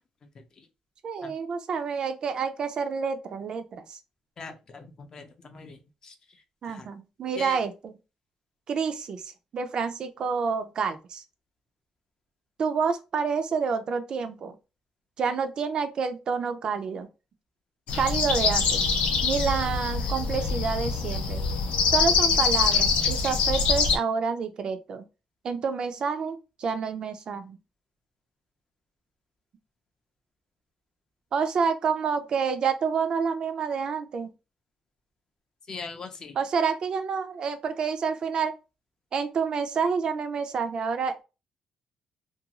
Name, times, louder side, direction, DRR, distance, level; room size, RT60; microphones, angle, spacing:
voice 1, 0.4-0.7 1.2-1.3 4.4-6.1 6.6-6.9 7.4-7.6 35.7-36.3, left 4 dB, 35° left, 0.4 m, -41 dB
voice 2, 1.0-4.0 6.6-7.9 8.7-11.2 12.6-14.5 15.2-17.1 17.9-18.9 19.2-21.4 21.8-25.0 25.4-27.6 31.3-34.3 36.4-38.5 39.1-41.2, right 5 dB, 45° right, 0.4 m, -28 dB
sound 1, 17.9-24.0, left 5 dB, 90° left, 0.5 m, -24 dB
2.5 x 2.3 x 2.8 m
cardioid pair, 160°, 2 cm